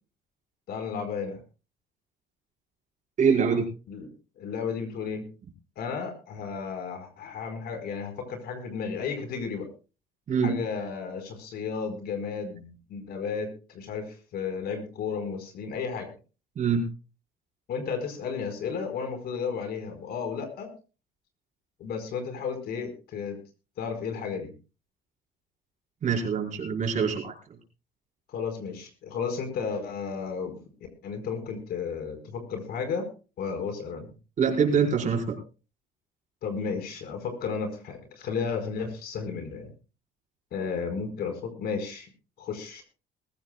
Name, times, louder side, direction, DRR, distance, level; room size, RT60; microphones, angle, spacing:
voice 1, 0.7-1.4 3.9-4.1 4.4-5.2 5.8-9.7 10.4-16.1 17.7-20.7 21.8-23.4 23.8-24.5 28.3-30.6 31.0-33.1 33.4-34.1 36.4-39.7 40.5-42.1 42.4-42.8, left 5 dB, 70° left, 7 dB, 4.8 m, -33 dB
voice 2, 3.2-3.6 10.3-10.6 16.5-16.8 26.0-27.3 34.4-35.4, right 6 dB, 45° right, 0 dB, 5.1 m, -24 dB
21.5 x 15.5 x 2.3 m, 0.33 s
cardioid pair, 110°, 17 cm